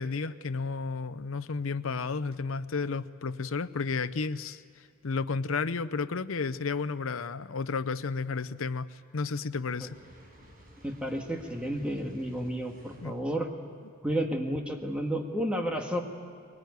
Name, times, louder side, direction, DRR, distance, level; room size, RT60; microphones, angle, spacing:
voice 1, 0.0-10.0 13.0-13.1, left 4 dB, 90° left, 14 dB, 0.7 m, -32 dB
Fire, 9.6-13.3, equal, 45° right, 5.7 m, -55 dB
voice 2, 10.8-13.5 14.0-16.0, equal, 5° right, 2 dB, 1.7 m, -31 dB
22.5 x 19.5 x 9.5 m, 2.3 s
head